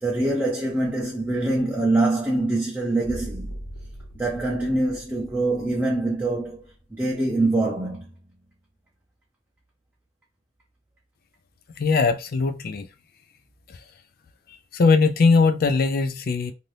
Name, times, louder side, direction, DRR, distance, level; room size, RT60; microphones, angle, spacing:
voice 1, 0.0-3.6 4.1-6.6 6.9-8.1, right 2 dB, 10° right, 0.5 m, -24 dB
sound 1, 3.0-7.0, right 1 dB, 75° left, 1.2 m, -40 dB
voice 2, 11.8-12.8 14.7-16.5, left 4 dB, 50° left, 0.4 m, -20 dB
2.7 x 2.6 x 3.2 m
head